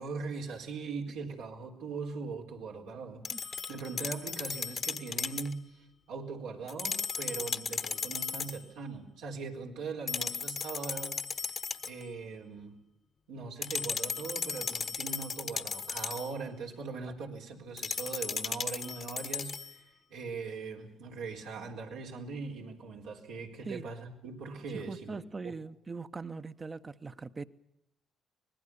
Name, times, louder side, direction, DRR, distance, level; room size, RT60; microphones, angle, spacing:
voice 1, 0.0-12.8 13.3-25.2 25.4-25.5, right 4 dB, 85° right, 4.1 m, -41 dB
sound 1, 3.2-5.5 6.7-8.6 10.1-12.0 13.6-16.3 17.8-19.7, left 5 dB, 50° left, 1.3 m, -36 dB
voice 2, 24.7-27.5, right 4 dB, 35° right, 1.2 m, -41 dB
25.0 x 20.0 x 7.1 m
supercardioid pair, 55°, 0 cm